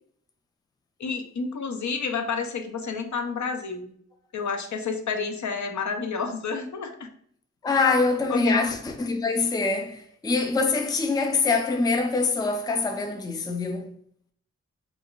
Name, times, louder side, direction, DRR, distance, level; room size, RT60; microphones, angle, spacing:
voice 1, 1.0-3.9 4.3-7.1 8.3-8.6, left 5 dB, 75° left, 0.5 m, -30 dB
voice 2, 7.6-13.9, left 4 dB, 15° left, 0.3 m, -24 dB
2.4 x 2.3 x 3.6 m
wide cardioid pair, 70°, 29 cm